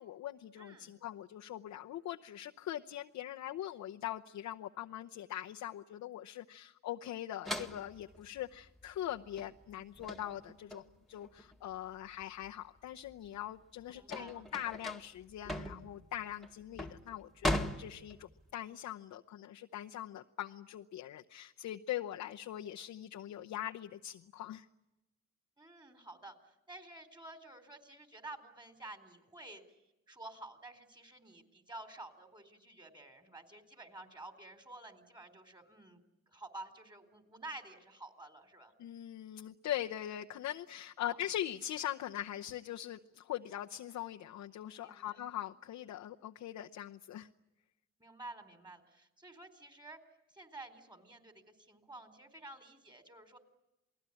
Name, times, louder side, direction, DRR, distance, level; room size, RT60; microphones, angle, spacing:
voice 1, 0.0-24.6 38.8-47.3, left 12 dB, 75° left, 3 dB, 0.9 m, -42 dB
voice 2, 0.6-1.0 13.9-14.5 25.6-29.6 30.1-36.0 36.3-38.7 41.0-41.2 44.8-45.2 48.0-50.0 50.3-53.4, right 2 dB, 15° right, 7 dB, 4.0 m, -51 dB
sound 1, 7.4-12.5 12.9-18.5, left 1 dB, ahead, 1.9 m, -40 dB
28.5 x 19.5 x 9.9 m, 0.98 s
cardioid pair, 90°, 30 cm